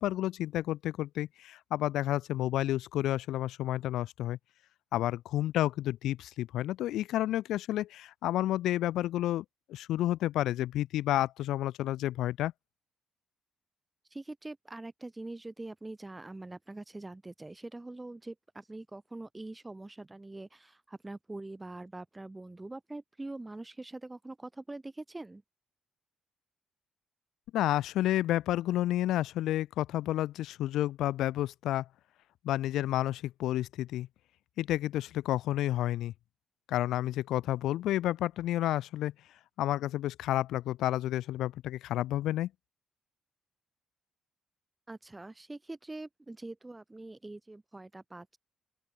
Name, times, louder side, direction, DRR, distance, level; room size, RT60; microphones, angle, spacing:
voice 1, 0.0-4.4 4.9-12.5 27.5-31.9 32.4-34.1 34.6-36.1 36.7-39.1 39.6-42.5, left 14 dB, 85° left, 0.5 m, -30 dB
voice 2, 14.1-25.4 44.9-48.4, right 2 dB, 15° right, 4.5 m, -44 dB
open air
cardioid pair, 90°, 0 cm